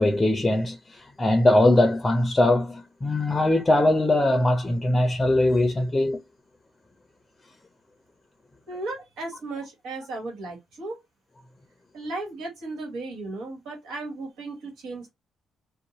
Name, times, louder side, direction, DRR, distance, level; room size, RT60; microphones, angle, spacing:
voice 1, 0.0-6.2, left 1 dB, 20° left, 0.5 m, -21 dB
voice 2, 8.7-11.0 11.9-15.1, right 2 dB, 85° right, 1.3 m, -35 dB
2.6 x 2.1 x 2.9 m
cardioid pair, 90°, 0 cm